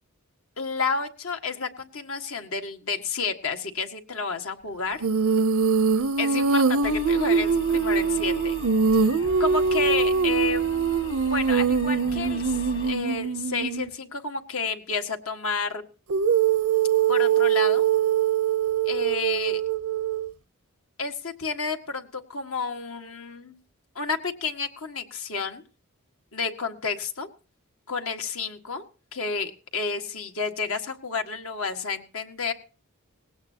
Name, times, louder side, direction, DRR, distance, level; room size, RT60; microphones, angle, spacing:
voice 1, 0.6-5.0 6.2-8.5 9.4-10.7 11.3-15.8 17.1-17.9 18.8-19.6 21.0-23.6 24.0-25.6 26.3-27.3 27.9-28.8 29.1-32.5, left 4 dB, 70° left, 5 dB, 1.8 m, -30 dB
Female singing, 5.0-13.9 16.1-20.3, right 6 dB, 75° right, 0.7 m, -23 dB
sound 1, 6.8-12.9, left 1 dB, 45° left, 2.0 m, -40 dB
19.5 x 17.0 x 2.9 m, 0.37 s
head